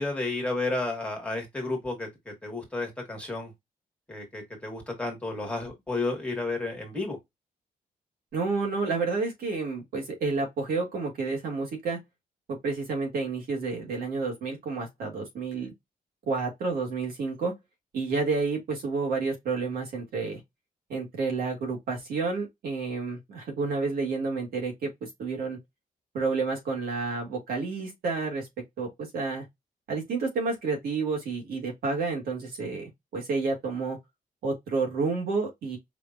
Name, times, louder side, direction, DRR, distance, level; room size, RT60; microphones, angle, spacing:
voice 1, 0.0-3.5 4.1-7.2, left 2 dB, 10° left, 1.6 m, -32 dB
voice 2, 8.3-12.0 12.6-15.7 16.3-17.5 17.9-20.4 20.9-25.6 26.1-28.5 28.8-29.5 29.9-34.0 34.4-35.8, right 4 dB, 90° right, 2.1 m, -30 dB
4.9 x 2.8 x 2.5 m
wide cardioid pair, 155°, 15 cm